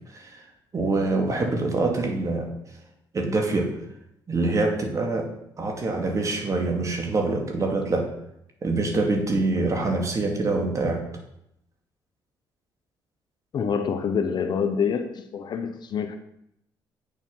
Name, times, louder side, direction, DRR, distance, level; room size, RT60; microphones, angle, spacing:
voice 1, 0.1-0.4 0.7-2.5 3.1-3.7 4.3-5.3 5.6-8.1 8.6-11.0, right 3 dB, 35° right, 2 dB, 2.4 m, -25 dB
voice 2, 13.5-16.2, left 6 dB, 55° left, 8 dB, 1.0 m, -26 dB
8.7 x 7.2 x 5.6 m, 0.79 s
cardioid pair, 90°, 9 cm